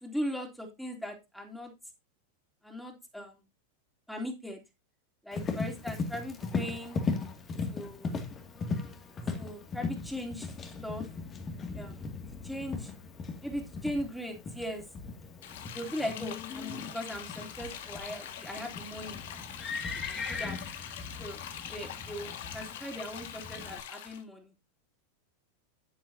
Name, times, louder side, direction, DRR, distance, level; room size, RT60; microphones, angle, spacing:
voice 1, 0.0-1.7 2.6-3.4 4.1-4.6 5.2-7.0 7.7-8.1 9.3-10.5 10.8-11.0 11.7-12.1 12.4-12.9 13.4-14.8 15.7-19.2 20.1-20.6 21.2-21.4 21.7-24.5, equal, ahead, 3 dB, 3.4 m, -39 dB
Livestock farm animals working animals, 5.3-23.8, left 4 dB, 25° left, 2.3 m, -38 dB
sound 1, 15.4-24.2, left 9 dB, 55° left, 1.9 m, -43 dB
11.0 x 10.5 x 2.8 m, 0.23 s
figure-of-eight pair, 90°, 0 cm